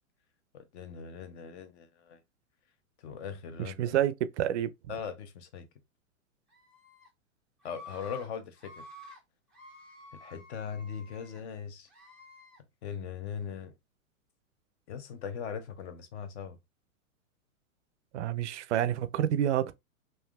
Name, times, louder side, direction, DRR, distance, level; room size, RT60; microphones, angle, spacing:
voice 1, 0.5-2.2 3.0-4.0 4.9-5.7 7.6-8.9 10.1-11.9 12.8-13.7 14.9-16.6, left 7 dB, 50° left, 0.8 m, -40 dB
voice 2, 3.6-4.7 18.1-19.7, right 11 dB, 55° right, 0.5 m, -28 dB
Screaming, 6.5-7.1 7.6-8.3 8.6-9.2 9.5-11.4 11.9-12.6, left 2 dB, ahead, 0.4 m, -51 dB
3.4 x 2.6 x 2.3 m
hypercardioid pair, 120°, 42 cm